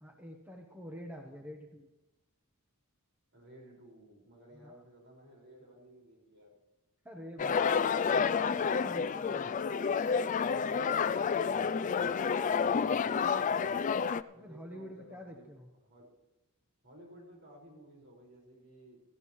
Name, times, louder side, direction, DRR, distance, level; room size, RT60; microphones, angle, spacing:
voice 1, 0.0-1.9 4.5-4.8 7.0-7.9 8.2-9.5 14.3-15.7, equal, 10° right, 2 dB, 1.0 m, -47 dB
voice 2, 3.3-6.6 10.1-13.8 14.3-16.1 16.8-19.0, equal, 55° right, -2 dB, 5.2 m, -56 dB
sound 1, 7.4-14.2, left 6 dB, 35° left, 0.3 m, -29 dB
17.0 x 14.5 x 3.1 m, 1.0 s
head